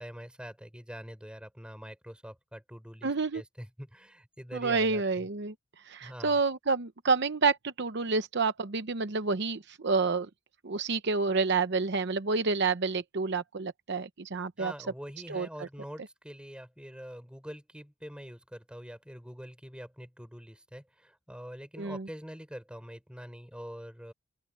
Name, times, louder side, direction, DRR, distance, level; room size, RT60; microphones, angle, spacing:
voice 1, 0.0-5.3 6.0-6.4 14.6-24.1, equal, 5° right, 4.8 m, -45 dB
voice 2, 3.0-3.4 4.5-5.5 5.9-10.3 10.6-14.7 15.3-15.5 21.8-22.1, right 4 dB, 55° right, 0.8 m, -29 dB
open air
head